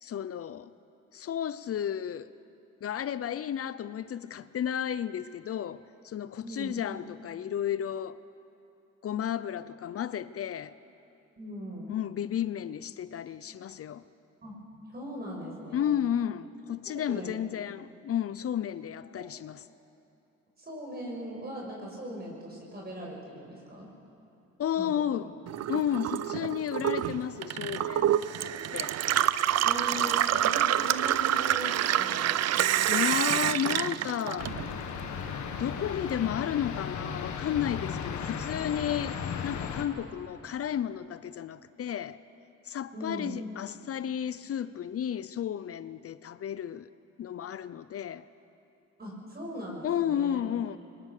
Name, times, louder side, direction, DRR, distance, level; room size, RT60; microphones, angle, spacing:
voice 1, 0.0-0.7 1.1-2.3 2.8-8.2 9.0-10.7 11.9-14.0 15.7-19.6 24.6-25.3 25.7-28.1 28.7-29.0 32.9-34.5 35.5-42.2 42.7-46.9 47.2-48.3 49.8-50.8, left 9 dB, 50° left, 0.6 m, -32 dB
voice 2, 6.4-6.7 11.4-11.9 14.4-14.6 14.9-16.0 16.9-17.3 19.1-19.3 20.6-23.9 24.8-24.9 29.6-33.3 42.9-43.3 49.0-50.4, equal, 30° right, 6.2 m, -40 dB
Gurgling / Water tap faucet / Sink (filling or washing), 25.5-35.0 35.3-36.2, right 11 dB, 55° right, 0.6 m, -27 dB
sound 1, 34.4-39.9, left 7 dB, 70° left, 1.7 m, -35 dB
23.0 x 21.0 x 6.7 m
cardioid pair, 90°, 30 cm